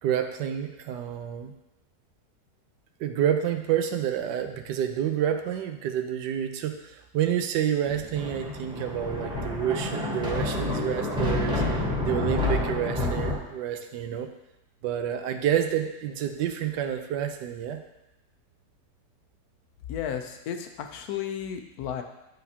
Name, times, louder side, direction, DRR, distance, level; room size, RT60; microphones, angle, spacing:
voice 1, 0.0-1.5 3.0-11.6 12.0-14.3 14.8-17.8, right 9 dB, 85° right, 6 dB, 1.3 m, -29 dB
Thunder, 7.9-13.4, left 2 dB, 5° right, 0.8 m, -29 dB
voice 2, 19.9-22.0, left 9 dB, 70° left, 6 dB, 1.1 m, -33 dB
10.5 x 3.9 x 2.8 m, 0.97 s
omnidirectional pair, 1.8 m